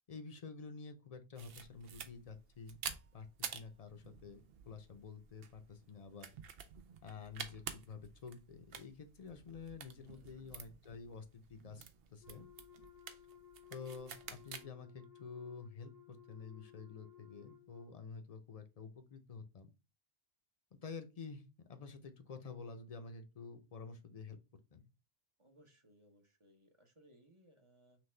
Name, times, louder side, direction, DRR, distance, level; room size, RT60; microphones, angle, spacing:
voice 1, 0.1-2.8 3.1-6.3 7.0-11.8 12.1-12.5 13.7-19.7 20.7-21.4 21.7-24.4 24.7-24.8, left 5 dB, 45° left, 7 dB, 0.7 m, -50 dB
sound 1, 1.4-14.6, right 7 dB, 75° right, 0.8 m, -50 dB
voice 2, 10.0-10.7 25.4-28.0, right 1 dB, 30° right, 4 dB, 0.8 m, -66 dB
Wind instrument woodwind instrument, 12.2-18.0, left 10 dB, 65° left, 0.9 m, -60 dB
6.0 x 2.3 x 3.2 m, 0.29 s
omnidirectional pair, 1.0 m